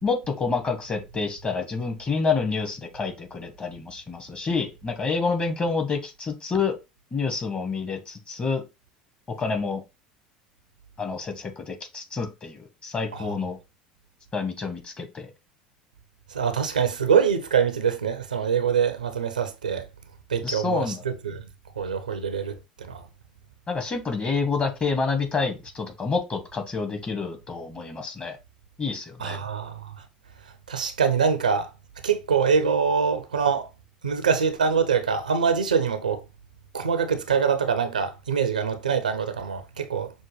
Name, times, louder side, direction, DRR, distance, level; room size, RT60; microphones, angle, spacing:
voice 1, 0.0-6.8 7.1-8.6 9.4-9.8 11.0-13.6 14.3-15.3 20.4-21.0 23.7-28.4 28.8-29.4, left 4 dB, 30° left, 1.1 m, -28 dB
voice 2, 16.3-19.9 20.3-21.5 21.8-23.1 29.2-30.0 30.7-31.7 32.0-33.7 34.0-36.2 36.7-40.1, right 6 dB, 90° right, 0.5 m, -24 dB
6.2 x 2.2 x 3.1 m
hypercardioid pair, 75°, 4 cm